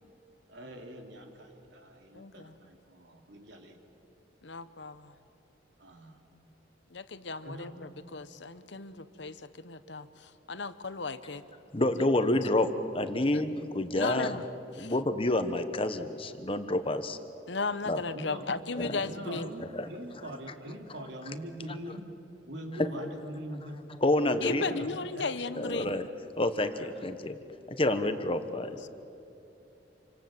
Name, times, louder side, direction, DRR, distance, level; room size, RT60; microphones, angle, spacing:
voice 1, 0.5-3.8 5.8-6.2 7.4-7.8 18.1-18.4 19.0-22.1 22.5-23.8 24.3-25.3 26.7-27.1, right 1 dB, 75° right, 3 dB, 3.0 m, -43 dB
voice 2, 2.1-2.6 4.4-5.1 6.9-11.4 13.3-13.4 13.9-14.4 14.7-14.9 17.5-19.5 24.4-25.9 28.8-28.9, left 3 dB, 75° left, 13 dB, 1.0 m, -36 dB
voice 3, 11.7-12.7 12.9-14.4 14.8-17.2 17.8-18.0 18.8-19.0 19.6-19.9 22.8-22.9 24.0-24.6 25.5-26.0 26.4-27.4 27.7-28.8, left 1 dB, 30° left, 9 dB, 1.2 m, -28 dB
28.0 x 25.5 x 7.8 m, 3.0 s
head